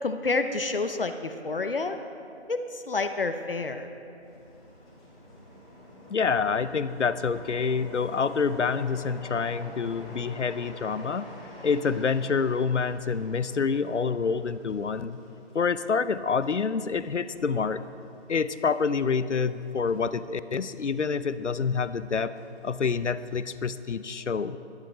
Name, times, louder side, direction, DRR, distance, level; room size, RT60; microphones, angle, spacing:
voice 1, 0.0-2.0 2.5-3.9, left 3 dB, 55° left, 8 dB, 0.8 m, -29 dB
sound 1, 4.2-20.1 20.5-21.0 21.3-22.6 23.0-23.3, equal, 5° left, 1.1 m, -48 dB
voice 2, 6.1-11.3 11.6-15.2 15.5-17.8 18.3-22.4 22.6-24.6, left 5 dB, 85° left, 14 dB, 0.7 m, -27 dB
27.5 x 10.5 x 3.4 m, 2.8 s
figure-of-eight pair, 165°, 35 cm